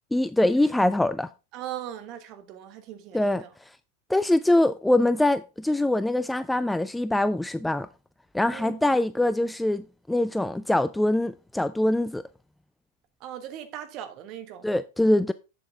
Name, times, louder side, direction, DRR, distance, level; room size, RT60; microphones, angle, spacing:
voice 1, 0.1-1.3 3.1-3.4 4.1-7.9 8.3-12.2 14.6-15.3, left 1 dB, 5° left, 0.3 m, -23 dB
voice 2, 1.5-3.5 8.5-8.8 13.2-14.8, right 11 dB, 40° right, 1.3 m, -39 dB
7.8 x 7.3 x 3.6 m
figure-of-eight pair, 90°, 0 cm